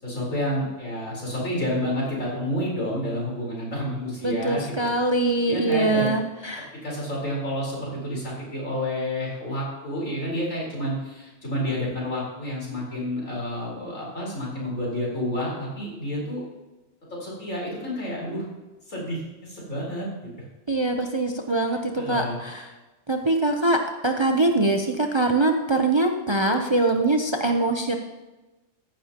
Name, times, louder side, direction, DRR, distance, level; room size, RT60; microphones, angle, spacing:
voice 1, 0.0-4.9 5.5-6.2 6.8-16.4 17.1-18.4 18.9-20.3 22.0-22.4, equal, 85° left, -5 dB, 4.7 m, -29 dB
voice 2, 4.2-6.7 20.7-22.7 23.1-27.9, right 2 dB, 30° right, 4 dB, 0.6 m, -23 dB
14.5 x 10.5 x 2.9 m, 1.1 s
omnidirectional pair, 1.3 m